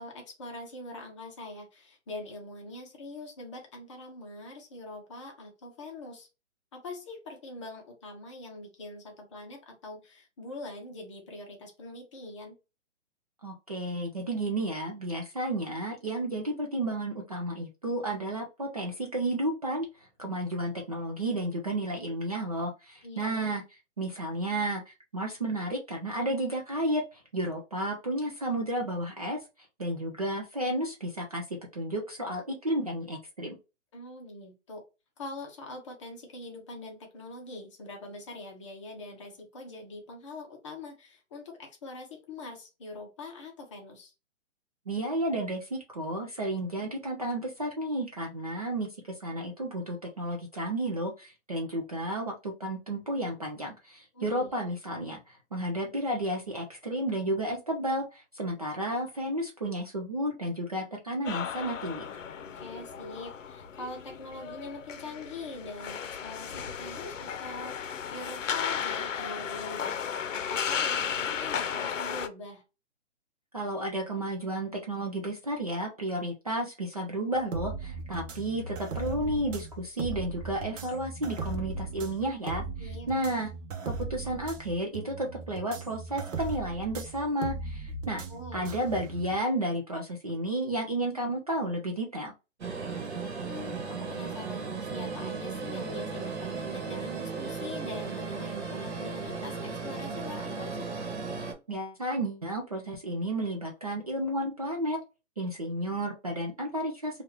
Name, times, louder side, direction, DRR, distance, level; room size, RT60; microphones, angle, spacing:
voice 1, 0.0-6.3 6.7-12.6 23.0-23.5 33.9-34.8 35.2-44.1 54.1-54.7 62.5-69.9 70.3-72.6 82.8-83.1 88.3-88.7 93.4-100.9, left 2 dB, 25° left, 2 dB, 0.7 m, -43 dB
voice 2, 13.4-23.6 24.0-29.4 29.8-31.4 31.7-33.6 44.9-62.0 73.5-83.5 83.9-88.2 88.5-92.3 101.7-105.0 105.4-107.2, right 1 dB, 35° right, 0 dB, 0.4 m, -32 dB
sound 1, 61.2-72.3, left 7 dB, 80° left, 0.7 m, -34 dB
sound 2, 77.3-89.4, right 3 dB, 80° right, 0.7 m, -38 dB
sound 3, 92.6-101.5, right 4 dB, 60° right, 1.2 m, -36 dB
2.9 x 2.4 x 3.1 m, 0.28 s
hypercardioid pair, 155°, 37 cm